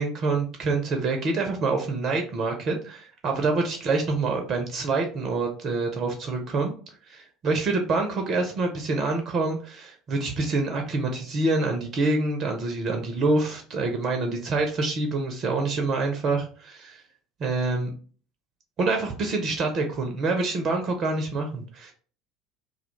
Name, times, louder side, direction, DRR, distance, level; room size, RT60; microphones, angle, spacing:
voice 1, 0.0-6.7 7.1-17.0 17.4-17.9 18.8-21.9, right 3 dB, 40° right, 4 dB, 0.4 m, -26 dB
2.2 x 2.1 x 2.9 m, 0.41 s
figure-of-eight pair, 65°, 0 cm